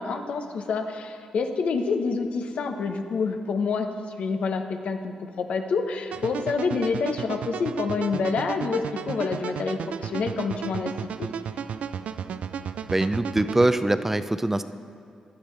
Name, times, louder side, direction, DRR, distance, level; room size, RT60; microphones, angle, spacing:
voice 1, 0.0-3.9 4.2-10.9 11.2-11.3, left 4 dB, 75° left, 6 dB, 0.9 m, -27 dB
sound 1, 6.1-13.7, right 7 dB, 75° right, 0.4 m, -34 dB
voice 2, 12.9-14.6, right 1 dB, 15° right, 11 dB, 0.5 m, -23 dB
15.5 x 10.0 x 3.2 m, 2.4 s
cardioid pair, 65°, 2 cm